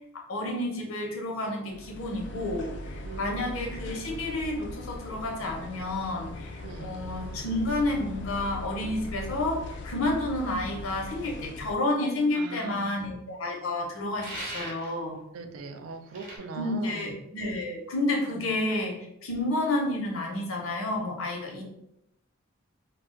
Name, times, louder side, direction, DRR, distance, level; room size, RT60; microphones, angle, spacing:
voice 1, 0.1-15.2 16.5-21.6, left 2 dB, 75° left, 0 dB, 0.8 m, -30 dB
sound 1, 1.7-11.8, left 2 dB, 55° left, 0.3 m, -40 dB
voice 2, 3.0-3.5 6.6-6.9 12.3-13.1 15.3-17.2 18.3-18.5, right 4 dB, 80° right, 7 dB, 0.4 m, -41 dB
sound 2, 14.2-15.0 16.1-16.4, right 1 dB, 40° right, 0.8 m, -38 dB
2.3 x 2.3 x 3.7 m, 0.80 s
head